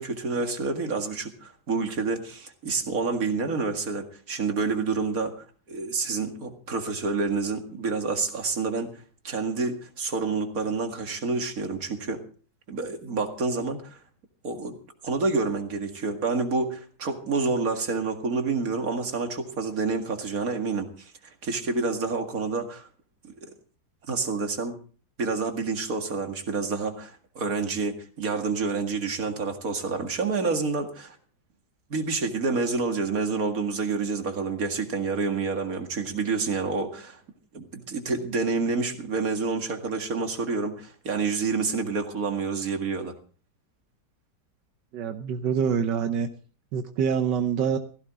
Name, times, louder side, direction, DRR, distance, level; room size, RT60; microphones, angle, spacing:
voice 1, 0.0-8.9 9.2-12.2 12.7-14.0 14.4-14.8 15.0-21.1 21.4-22.9 23.4-23.5 24.1-24.7 25.2-31.2 31.9-37.2 37.5-43.1, right 4 dB, 55° right, 5 dB, 2.4 m, -28 dB
voice 2, 44.9-46.3 46.7-47.8, right 7 dB, 85° right, 7 dB, 1.5 m, -25 dB
16.0 x 15.5 x 3.6 m, 0.40 s
omnidirectional pair, 1.8 m